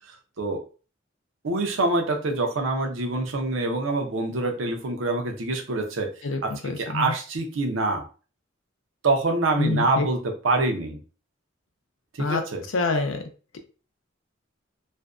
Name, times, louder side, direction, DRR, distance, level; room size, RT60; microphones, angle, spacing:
voice 1, 1.4-6.1 6.4-8.0 9.0-11.0 12.2-12.6, right 2 dB, 80° right, 4 dB, 0.6 m, -25 dB
voice 2, 6.2-7.1 9.6-10.1 12.2-12.4 12.7-13.2, left 3 dB, 85° left, 5 dB, 0.5 m, -26 dB
2.5 x 2.2 x 2.3 m, 0.36 s
head